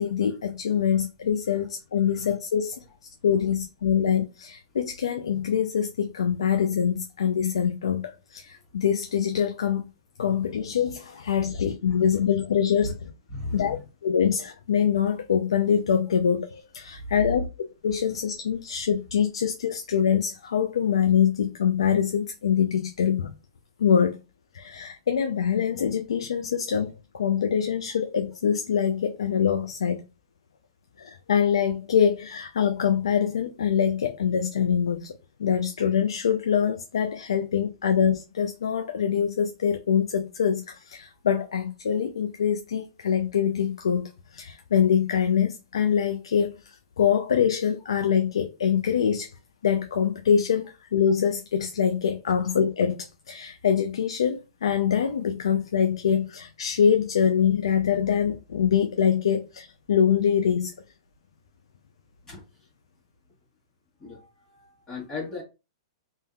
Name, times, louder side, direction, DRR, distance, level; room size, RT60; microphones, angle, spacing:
voice 1, 0.0-2.8 3.2-9.8 10.2-13.0 13.5-13.8 14.0-17.4 17.8-23.3 23.8-24.2 24.5-30.0 31.0-35.1 35.4-49.3 49.6-60.7, left 8 dB, 85° left, 0.4 m, -24 dB
voice 2, 13.3-13.8 17.0-17.1 62.3-62.4 64.0-65.4, left 2 dB, 20° left, 1.3 m, -36 dB
3.6 x 2.6 x 2.3 m
hypercardioid pair, 135°, 3 cm